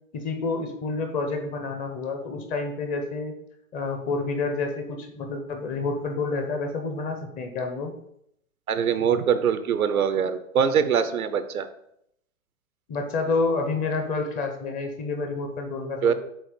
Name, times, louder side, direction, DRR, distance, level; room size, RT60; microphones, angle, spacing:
voice 1, 0.1-3.3 3.7-7.9 12.9-16.1, left 3 dB, 20° left, 5 dB, 0.7 m, -29 dB
voice 2, 8.7-11.7 16.0-16.1, right 7 dB, 80° right, 11 dB, 0.7 m, -23 dB
7.4 x 2.5 x 5.0 m, 0.74 s
hypercardioid pair, 120°, 42 cm